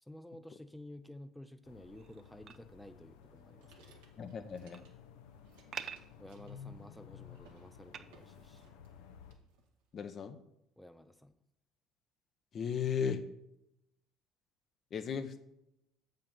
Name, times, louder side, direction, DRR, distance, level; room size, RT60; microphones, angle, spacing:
voice 1, 0.0-3.9 6.2-8.6 10.8-11.3, left 1 dB, 5° left, 9 dB, 0.5 m, -52 dB
sound 1, 1.6-9.3, left 7 dB, 75° left, 0.7 m, -55 dB
sound 2, 2.0-2.6 4.4-4.9 5.4-6.0 6.8-7.2 7.9-8.0, right 7 dB, 50° right, 0.5 m, -45 dB
sound 3, 2.5-5.1 5.4-7.1 7.3-7.7 8.1-9.0 9.3-10.1, right 5 dB, 80° right, 1.4 m, -65 dB
voice 2, 4.2-4.8 9.9-10.4 12.5-13.2 14.9-15.4, left 7 dB, 45° left, 9 dB, 0.8 m, -36 dB
7.0 x 5.7 x 5.4 m, 0.84 s
hypercardioid pair, 65°, 0 cm